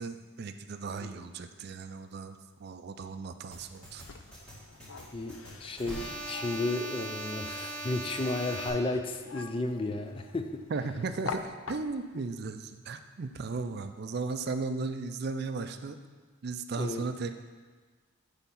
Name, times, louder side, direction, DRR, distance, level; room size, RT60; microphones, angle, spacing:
voice 1, 0.0-4.0 10.7-16.0 16.4-17.4, right 4 dB, 50° right, 9 dB, 0.4 m, -36 dB
sound 1, 3.5-8.7, right 2 dB, 5° left, 1.6 m, -40 dB
sound 2, 3.7-12.2, left 5 dB, 80° left, 0.5 m, -46 dB
voice 2, 5.1-10.6 16.8-17.0, left 2 dB, 25° left, 6 dB, 0.4 m, -33 dB
10.0 x 3.5 x 5.5 m, 1.4 s
head